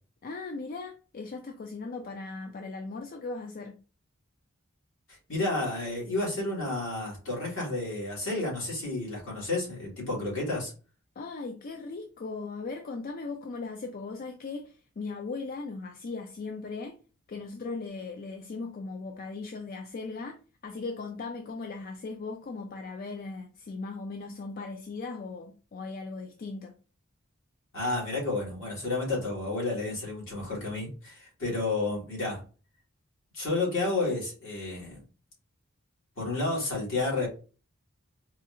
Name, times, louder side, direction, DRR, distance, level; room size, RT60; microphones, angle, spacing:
voice 1, 0.2-3.8 11.2-17.0 17.3-26.7, left 3 dB, 40° left, 0.3 m, -38 dB
voice 2, 5.3-10.7 27.7-32.4 33.3-35.0 36.2-37.3, left 2 dB, 65° left, 2.0 m, -31 dB
4.3 x 2.7 x 2.4 m
head